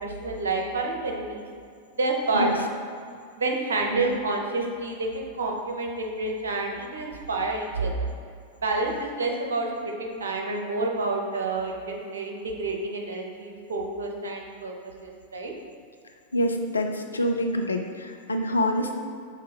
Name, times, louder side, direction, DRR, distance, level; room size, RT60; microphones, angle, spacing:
voice 1, 0.0-1.5 2.0-2.5 3.4-8.1 8.6-15.5, right 3 dB, 65° right, 1 dB, 0.9 m, -29 dB
voice 2, 2.3-2.7 3.9-4.2 16.3-18.9, left 1 dB, 80° left, 4 dB, 0.5 m, -26 dB
5.9 x 3.6 x 4.6 m, 2.3 s
figure-of-eight pair, 90°, 0 cm